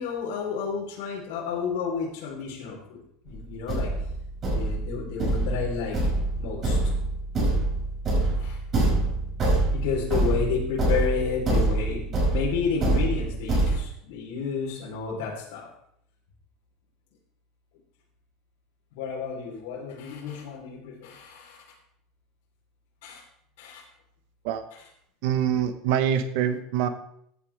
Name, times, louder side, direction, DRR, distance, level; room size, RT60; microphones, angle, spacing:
voice 1, 0.0-3.9 4.5-6.1 6.4-6.8 8.4-8.6 9.7-15.7 18.9-21.6 23.0-23.2 23.6-23.8 24.7-24.9, left 6 dB, 75° left, -4 dB, 4.0 m, -31 dB
Thump thud, 3.3-3.4 3.7-13.7, right 2 dB, 30° right, 5.4 m, -25 dB
voice 2, 25.2-26.9, right 9 dB, 65° right, 9 dB, 1.2 m, -25 dB
15.5 x 9.6 x 3.6 m, 0.71 s
supercardioid pair, 155°, 0 cm